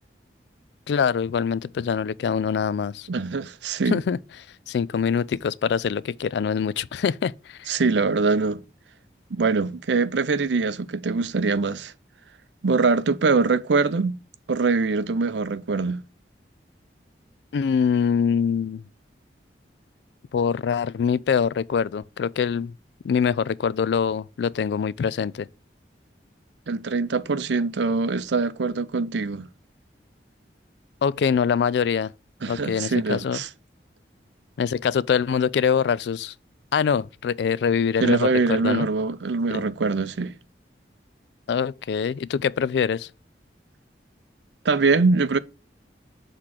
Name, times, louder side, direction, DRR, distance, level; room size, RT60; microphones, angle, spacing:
voice 1, 0.9-3.1 3.9-4.2 4.7-7.7 17.5-18.8 20.3-22.7 23.0-25.5 31.0-32.1 32.5-33.4 34.6-36.3 36.7-38.9 39.5-39.6 41.5-43.1, left 6 dB, 70° left, 0.3 m, -24 dB
voice 2, 3.1-4.0 7.7-8.6 9.3-11.9 12.6-14.2 14.5-16.0 26.7-29.5 32.4-33.5 38.0-40.3 44.6-45.4, right 4 dB, 80° right, 0.6 m, -23 dB
6.5 x 3.7 x 5.8 m
head